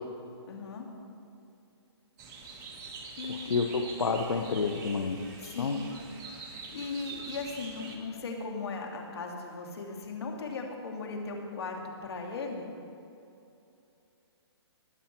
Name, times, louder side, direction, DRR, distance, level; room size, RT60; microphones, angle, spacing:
voice 1, 0.5-0.9 3.2-3.6 5.4-5.9 6.5-12.7, left 4 dB, 65° left, 1 dB, 2.3 m, -38 dB
sound 1, 2.2-8.0, right 4 dB, 20° right, 1.2 m, -44 dB
voice 2, 3.3-5.2 5.6-5.8, left 4 dB, 80° left, 3 dB, 0.9 m, -29 dB
20.0 x 7.1 x 4.5 m, 2.7 s
hypercardioid pair, 160°, 14 cm